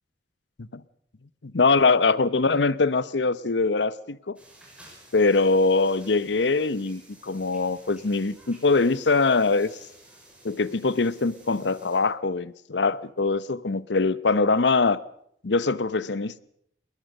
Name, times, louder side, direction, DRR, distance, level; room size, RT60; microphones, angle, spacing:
voice 1, 1.4-4.4 5.1-9.7 10.4-15.0 15.4-16.4, left 3 dB, 85° left, 0.8 m, -23 dB
sound 1, 4.4-12.0, right 1 dB, 5° right, 5.8 m, -52 dB
20.5 x 20.0 x 6.6 m
head